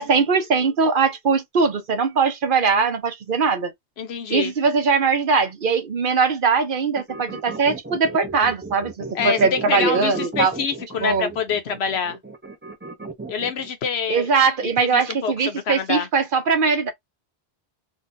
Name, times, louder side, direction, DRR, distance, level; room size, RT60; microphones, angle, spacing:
voice 1, 0.0-3.7 4.3-10.5 11.0-11.3 14.1-16.9, right 5 dB, 55° right, 0.8 m, -21 dB
voice 2, 4.0-4.5 9.1-12.2 13.3-14.3 14.8-16.1, left 6 dB, 75° left, 1.0 m, -26 dB
sound 1, 7.0-13.7, right 3 dB, 15° right, 0.4 m, -34 dB
3.7 x 2.2 x 2.6 m
omnidirectional pair, 1.1 m